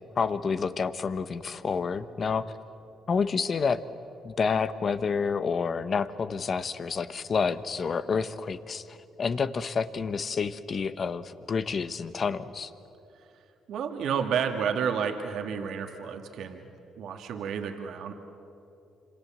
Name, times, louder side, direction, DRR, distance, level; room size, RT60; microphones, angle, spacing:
voice 1, 0.1-2.5 3.1-3.8 4.2-12.7, left 5 dB, 50° left, 13 dB, 1.2 m, -29 dB
voice 2, 13.7-16.6 17.0-18.1, right 7 dB, 75° right, 5 dB, 2.0 m, -30 dB
27.0 x 26.0 x 7.6 m, 2.8 s
cardioid pair, 80°, 0 cm